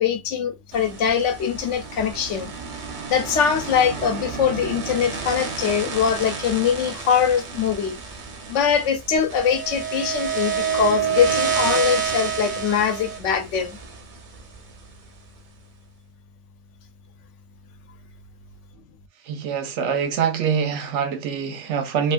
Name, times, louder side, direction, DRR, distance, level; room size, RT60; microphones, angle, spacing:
voice 1, 0.0-2.5 3.1-7.9 8.5-13.8, left 7 dB, 85° left, 0.9 m, -22 dB
sound 1, 0.7-14.9, right 6 dB, 50° right, 0.6 m, -29 dB
voice 2, 19.3-22.1, right 7 dB, 85° right, 0.9 m, -24 dB
2.7 x 2.5 x 2.2 m
omnidirectional pair, 1.2 m